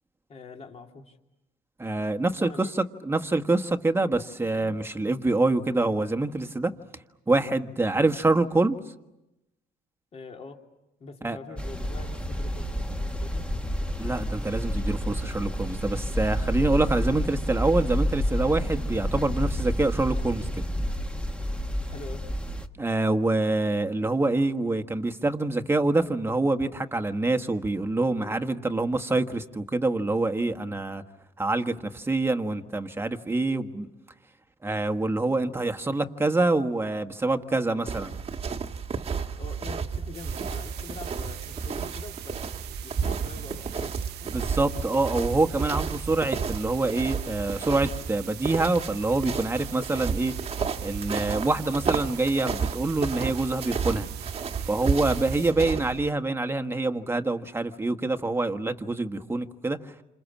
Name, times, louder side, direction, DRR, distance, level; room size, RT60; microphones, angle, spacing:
voice 1, 0.3-1.2 2.4-2.7 10.1-10.6 11.0-13.5 21.8-22.2 39.4-44.3, left 4 dB, 40° left, 3.0 m, -44 dB
voice 2, 1.8-6.7 7.3-8.8 11.2-11.4 14.0-20.5 22.8-31.0 31.4-33.9 34.6-38.2 44.3-50.3 50.8-54.1 54.7-59.8, right 2 dB, 15° right, 1.5 m, -26 dB
sound 1, 11.6-22.7, equal, 5° left, 1.5 m, -29 dB
sound 2, 37.8-56.1, right 6 dB, 35° right, 1.5 m, -32 dB
sound 3, 40.1-55.5, right 14 dB, 75° right, 1.0 m, -43 dB
29.0 x 27.0 x 7.4 m
cardioid pair, 110°, 17 cm